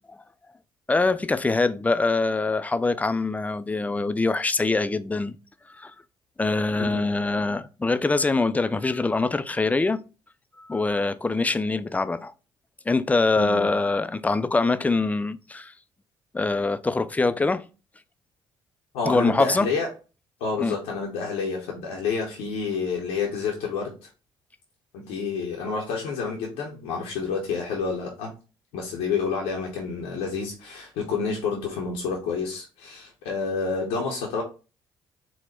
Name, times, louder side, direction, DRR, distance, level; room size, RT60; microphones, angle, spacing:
voice 1, 0.9-5.4 5.7-5.9 6.4-10.0 10.6-12.3 12.9-15.7 16.3-17.6 19.1-19.7 20.6-20.7, left 3 dB, 15° left, 0.4 m, -24 dB
voice 2, 13.4-13.7 18.9-19.9 20.4-24.1 24.9-28.3 28.7-34.4, left 5 dB, 85° left, 0.8 m, -29 dB
4.1 x 2.2 x 4.3 m
hypercardioid pair, 55°, 11 cm